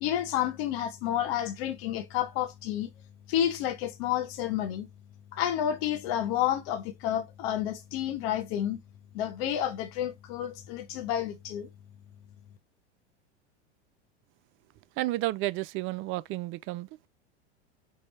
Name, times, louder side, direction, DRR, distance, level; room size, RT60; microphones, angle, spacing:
voice 1, 0.0-2.9 3.3-4.9 5.3-8.8 9.1-11.7, left 11 dB, 60° left, 0.8 m, -30 dB
voice 2, 15.0-16.9, right 17 dB, 40° right, 0.4 m, -31 dB
5.4 x 2.6 x 3.1 m
hypercardioid pair, 100°, 35 cm